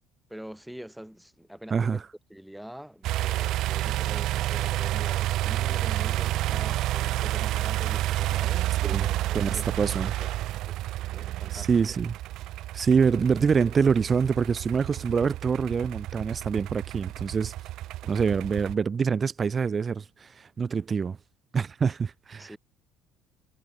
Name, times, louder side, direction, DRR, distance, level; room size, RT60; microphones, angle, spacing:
voice 1, 0.3-2.0 2.3-10.8 11.1-11.7 18.0-18.1 22.4-22.6, equal, 5° right, 2.1 m, -44 dB
voice 2, 1.7-2.0 8.8-9.1 9.3-10.1 11.5-12.1 12.7-17.5 18.1-21.2 21.5-22.6, right 6 dB, 35° right, 0.6 m, -25 dB
sound 1, 3.0-18.7, right 15 dB, 65° right, 1.0 m, -30 dB
hypercardioid pair, 65°, 0 cm